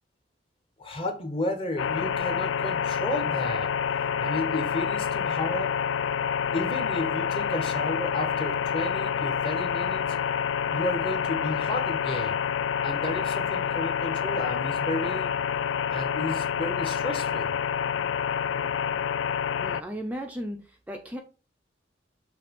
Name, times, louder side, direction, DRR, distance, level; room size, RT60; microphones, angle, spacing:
voice 1, 0.8-3.7 4.2-5.7 6.5-10.2 10.7-12.4 12.8-15.4 15.9-17.6, left 1 dB, 30° left, 1.2 m, -32 dB
sound 1, 1.8-19.8, left 7 dB, 85° left, 0.3 m, -28 dB
voice 2, 19.6-21.2, equal, 10° right, 0.6 m, -35 dB
6.8 x 2.9 x 5.2 m
head